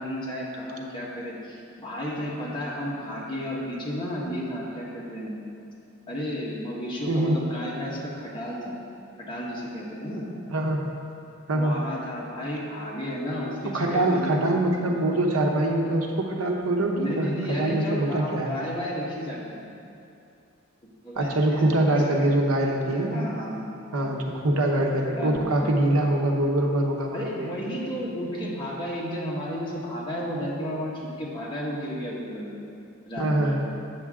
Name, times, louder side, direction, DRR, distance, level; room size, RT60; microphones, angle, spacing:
voice 1, 0.0-5.4 6.1-8.7 9.2-10.2 11.5-14.3 16.9-19.6 21.0-22.3 23.1-24.3 25.2-25.7 27.1-32.5 33.0-33.6, equal, 20° left, -5 dB, 1.4 m, -33 dB
voice 2, 10.5-10.9 11.5-11.8 13.6-18.6 21.2-23.3 23.9-27.5 33.2-33.6, right 1 dB, 90° right, 1 dB, 0.9 m, -24 dB
8.3 x 7.1 x 3.7 m, 2.6 s
head